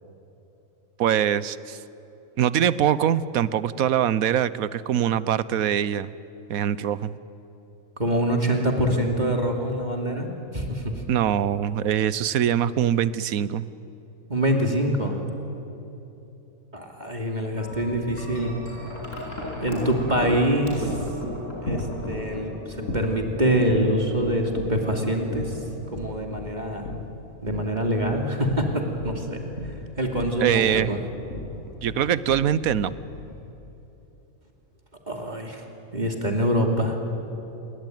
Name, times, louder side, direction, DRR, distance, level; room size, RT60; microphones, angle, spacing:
voice 1, 1.0-1.8 2.4-6.1 6.5-7.2 11.1-13.7 30.4-31.0 31.8-32.9, right 9 dB, 85° right, 17 dB, 1.3 m, -23 dB
voice 2, 8.0-10.3 10.5-10.9 14.3-15.2 16.7-18.5 19.6-20.9 21.6-25.6 25.9-26.9 27.4-29.4 30.0-31.0 35.1-35.6 35.9-37.0, right 1 dB, 30° right, 2 dB, 2.9 m, -25 dB
Wind chime, 17.6-33.8, left 1 dB, 65° left, 6.7 m, -35 dB
28.5 x 22.5 x 9.3 m, 2.9 s
omnidirectional pair, 1.4 m